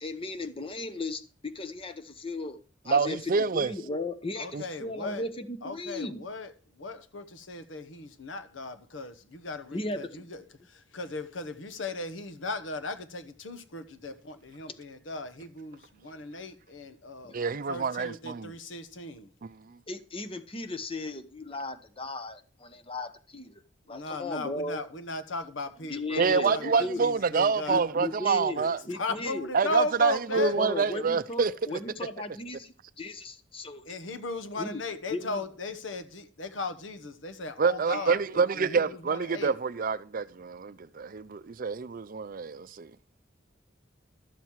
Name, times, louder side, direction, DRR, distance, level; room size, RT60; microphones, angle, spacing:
voice 1, 0.0-2.6 2.8-6.2 9.7-10.3 14.7-14.8 17.2-17.4 19.9-23.6 23.9-24.8 25.8-27.0 27.7-29.5 30.4-34.0 34.6-34.8 35.1-35.4, left 2 dB, 30° left, 0.9 m, -36 dB
voice 2, 2.9-3.7 4.5-4.6 17.3-18.5 19.4-19.5 26.2-28.8 29.5-31.5 37.6-42.9, right 5 dB, 50° right, 0.5 m, -27 dB
voice 3, 4.4-5.2 5.6-6.5 6.8-17.3 17.7-19.3 23.9-27.8 28.9-30.6 33.8-39.5, left 3 dB, 85° left, 1.1 m, -37 dB
12.5 x 7.4 x 4.7 m
head